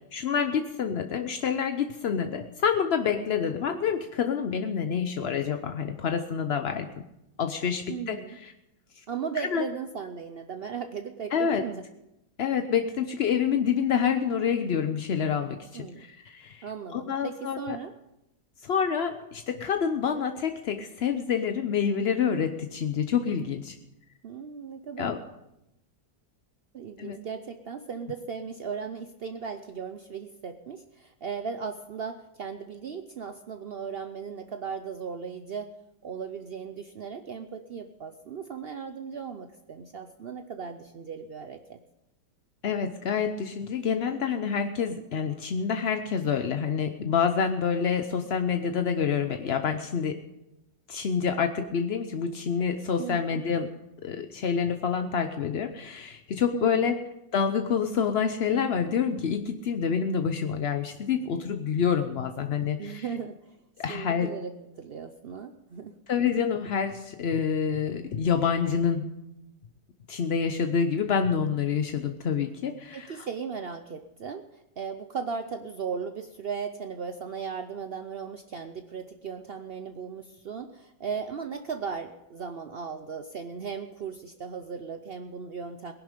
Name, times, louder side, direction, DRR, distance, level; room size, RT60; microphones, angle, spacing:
voice 1, 0.1-6.9 7.4-8.5 9.4-9.7 11.3-11.6 12.4-16.7 16.9-17.8 18.6-23.8 25.0-25.2 27.0-27.2 42.6-50.2 50.9-53.7 54.0-57.0 57.3-63.0 63.8-64.3 66.1-69.1 70.1-73.3, left 7 dB, 60° left, 7 dB, 0.6 m, -27 dB
voice 2, 7.9-8.4 9.1-11.8 15.7-16.0 16.6-17.9 24.2-25.1 26.7-35.7 36.0-41.8 53.0-53.4 56.5-56.9 62.8-63.6 63.9-65.9 72.9-85.9, right 6 dB, 85° right, 8 dB, 0.5 m, -37 dB
19.0 x 11.0 x 5.2 m, 0.88 s
omnidirectional pair, 1.9 m